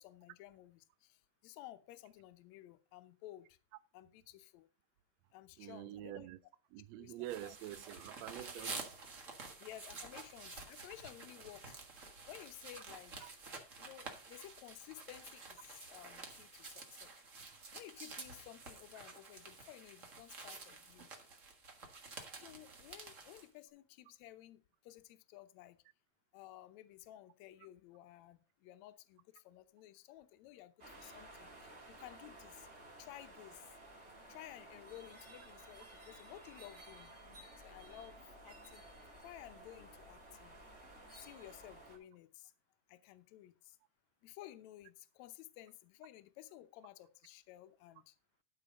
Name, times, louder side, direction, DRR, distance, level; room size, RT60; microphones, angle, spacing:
voice 1, 0.0-3.6 3.9-4.7 5.3-6.3 7.0-7.5 8.6-8.8 9.6-13.3 13.8-17.1 17.7-21.1 22.4-25.8 26.3-32.7 33.0-33.6 34.3-37.1 37.6-38.9 39.2-40.5 41.1-42.5 42.9-43.8 44.2-48.1, left 14 dB, 75° left, 1.8 m, -55 dB
voice 2, 5.6-6.4 6.7-8.9 13.2-13.3 22.4-22.6, right 15 dB, 90° right, 1.5 m, -47 dB
sound 1, 7.2-23.5, right 3 dB, 40° right, 1.1 m, -50 dB
sound 2, 30.8-42.0, right 1 dB, 20° right, 2.7 m, -55 dB
12.5 x 4.9 x 5.1 m
omnidirectional pair, 3.8 m